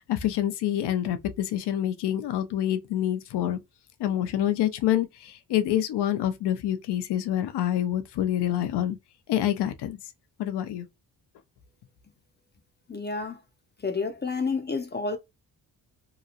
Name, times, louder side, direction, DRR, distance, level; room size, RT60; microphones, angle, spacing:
voice 1, 0.0-3.6 4.0-9.0 9.3-10.0 10.4-10.9, left 11 dB, 75° left, 0.7 m, -27 dB
voice 2, 12.9-13.4 13.8-15.2, left 4 dB, 25° left, 0.6 m, -29 dB
2.9 x 2.3 x 2.4 m
cardioid pair, 80°, 40 cm